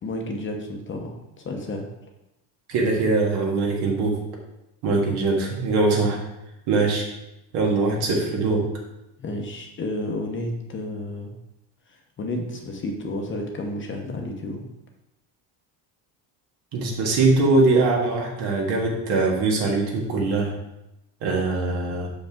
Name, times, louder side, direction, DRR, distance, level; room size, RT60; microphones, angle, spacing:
voice 1, 0.0-1.8 9.2-11.4 11.9-14.7, left 1 dB, 30° left, 2 dB, 0.8 m, -31 dB
voice 2, 2.7-4.2 4.8-6.2 6.7-7.1 7.5-8.7 16.7-20.5 21.2-22.1, right 3 dB, 65° right, -1 dB, 1.8 m, -22 dB
6.1 x 5.1 x 3.6 m, 0.91 s
cardioid pair, 140°, 42 cm